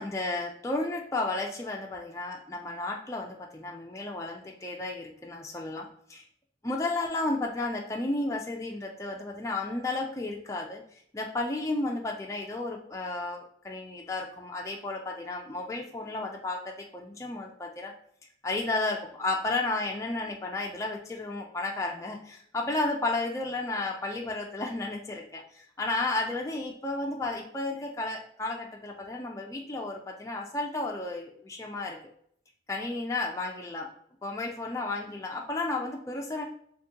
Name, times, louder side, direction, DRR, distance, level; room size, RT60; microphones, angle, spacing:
voice 1, 0.0-6.2 6.6-10.8 11.1-17.9 18.4-32.0 32.7-33.9 34.2-36.4, left 2 dB, 15° left, -1 dB, 0.4 m, -33 dB
2.7 x 2.5 x 3.7 m, 0.65 s
head